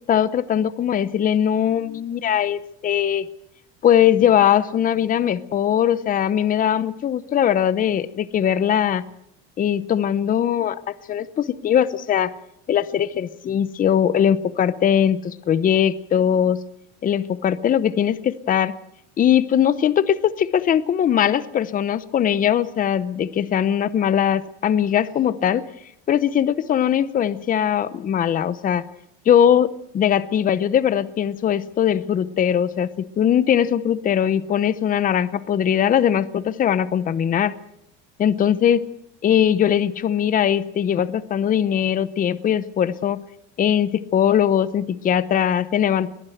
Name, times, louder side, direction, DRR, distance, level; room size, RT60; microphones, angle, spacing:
voice 1, 0.1-3.3 3.8-9.0 9.6-12.3 12.7-16.6 17.0-18.7 19.2-25.7 26.1-28.8 29.3-37.6 38.2-38.8 39.2-43.2 43.6-46.1, left 9 dB, 25° left, 16 dB, 0.8 m, -20 dB
22.0 x 15.0 x 7.9 m, 0.77 s
cardioid pair, 150°, 34 cm